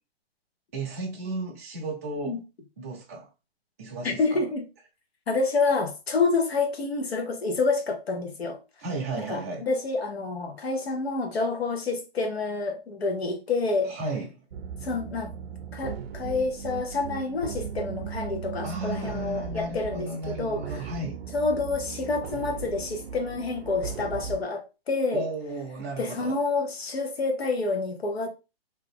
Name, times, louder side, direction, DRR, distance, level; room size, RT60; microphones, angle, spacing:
voice 1, 0.7-2.4 2.8-3.3 3.8-4.5 8.8-9.6 13.8-14.4 18.6-21.2 25.1-26.4, right 2 dB, 15° right, 0.5 m, -34 dB
voice 2, 4.0-4.7 5.3-8.6 9.3-13.9 14.8-15.3 15.7-20.6 21.3-25.3 26.0-28.3, left 3 dB, 85° left, 1.1 m, -28 dB
sound 1, 14.5-24.4, right 7 dB, 75° right, 0.5 m, -37 dB
2.8 x 2.4 x 3.4 m
hypercardioid pair, 165°, 30 cm